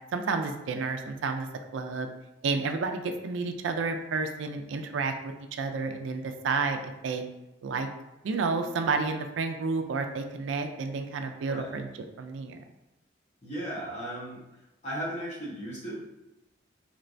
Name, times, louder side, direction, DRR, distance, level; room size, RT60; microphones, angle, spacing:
voice 1, 0.1-1.5 1.7-2.1 2.4-5.3 5.6-7.2 7.6-7.9 8.2-11.9 12.2-12.6, right 4 dB, 80° right, 6 dB, 0.4 m, -30 dB
voice 2, 13.4-16.0, right 1 dB, 35° left, -7 dB, 1.1 m, -36 dB
3.2 x 2.9 x 2.5 m, 0.96 s
head